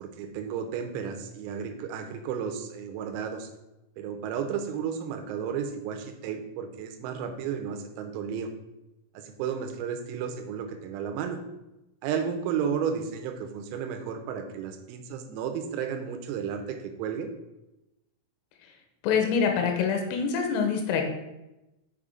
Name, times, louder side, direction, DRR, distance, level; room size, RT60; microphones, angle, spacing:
voice 1, 0.0-3.5 4.0-8.5 9.2-11.4 12.0-17.3, right 7 dB, 90° right, 6 dB, 3.6 m, -33 dB
voice 2, 19.0-21.0, left 6 dB, 90° left, 3 dB, 3.6 m, -25 dB
8.3 x 5.8 x 3.7 m, 0.96 s
omnidirectional pair, 6.0 m